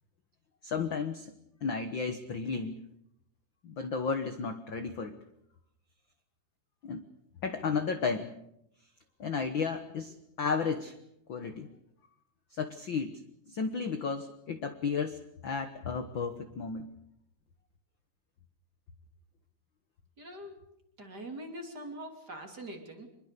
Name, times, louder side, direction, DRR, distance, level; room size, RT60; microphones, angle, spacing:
voice 1, 0.6-1.3 1.6-2.8 3.6-5.2 6.8-7.0 7.4-8.3 9.2-10.9 11.3-11.7 12.5-13.2 13.5-16.9, left 5 dB, 60° left, 8 dB, 1.3 m, -33 dB
voice 2, 20.2-20.7 21.0-23.1, right 1 dB, 30° right, 4 dB, 3.4 m, -43 dB
25.5 x 22.0 x 6.8 m, 0.79 s
omnidirectional pair, 4.0 m